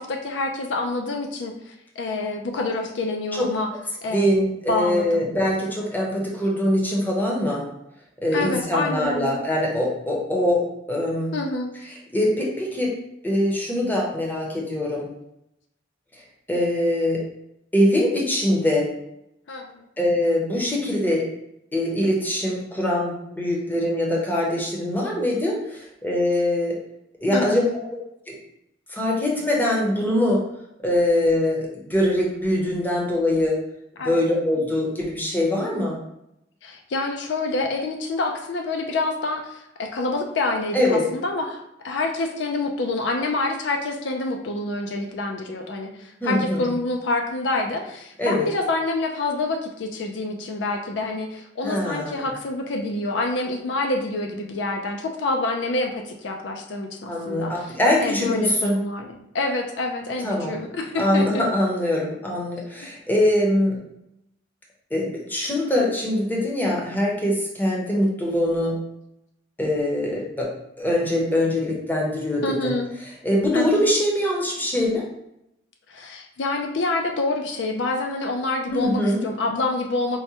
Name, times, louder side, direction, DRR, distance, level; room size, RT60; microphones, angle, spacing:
voice 1, 0.0-3.7 4.0-4.3 4.7-5.3 8.3-9.4 11.3-11.7 19.5-19.9 27.3-27.8 34.0-34.3 36.6-57.7 58.0-59.1 59.3-61.4 62.8-62.9 72.4-72.9 73.5-73.8 75.9-80.2, left 2 dB, 65° left, 3 dB, 0.4 m, -27 dB
voice 2, 4.1-7.7 8.2-11.3 11.8-12.9 13.2-15.1 16.1-16.2 16.5-17.2 17.7-18.9 20.0-21.2 21.7-26.8 27.2-27.6 28.3-28.4 28.9-30.4 30.8-33.6 34.0-36.0 40.7-41.0 46.2-46.7 48.2-48.5 51.6-52.3 57.1-58.8 60.2-60.5 61.0-63.8 64.9-68.8 69.6-70.5 70.8-72.8 73.0-75.1 78.7-79.2, left 1 dB, 10° left, -3 dB, 0.7 m, -23 dB
4.6 x 2.1 x 2.8 m, 0.83 s
head